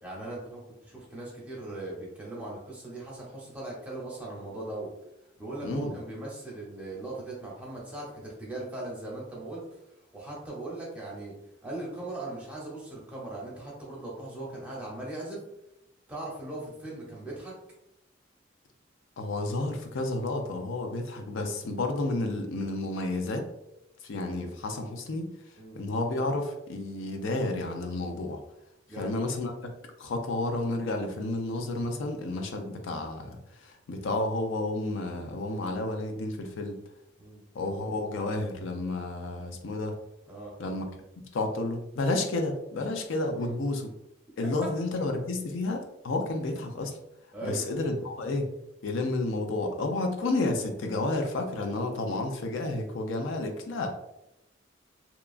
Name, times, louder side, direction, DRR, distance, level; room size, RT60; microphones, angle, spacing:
voice 1, 0.0-4.9 5.4-9.6 10.1-11.3 11.6-15.4 16.1-17.6 25.6-25.8 28.9-29.2 37.2-37.4 40.3-40.5 43.3-43.6 47.3-47.7, right 2 dB, 5° right, -5 dB, 0.7 m, -39 dB
voice 2, 5.6-6.0 19.2-23.5 24.0-25.3 25.8-28.4 29.0-29.7 30.0-36.8 37.5-40.0 40.6-40.9 41.3-43.9 44.4-47.0 47.4-48.5 48.8-53.9, left 2 dB, 80° left, 4 dB, 0.4 m, -31 dB
2.8 x 2.3 x 2.4 m, 0.85 s
head